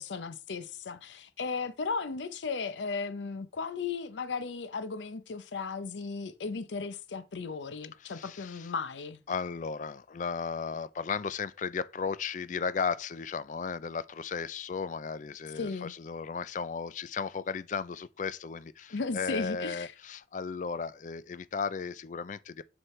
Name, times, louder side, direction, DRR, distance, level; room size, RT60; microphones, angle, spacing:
voice 1, 0.0-9.2 15.6-15.9 18.9-19.9, left 4 dB, 90° left, 0.6 m, -36 dB
voice 2, 8.0-8.7 9.3-22.6, left 5 dB, 45° left, 0.4 m, -35 dB
7.7 x 6.2 x 3.1 m
head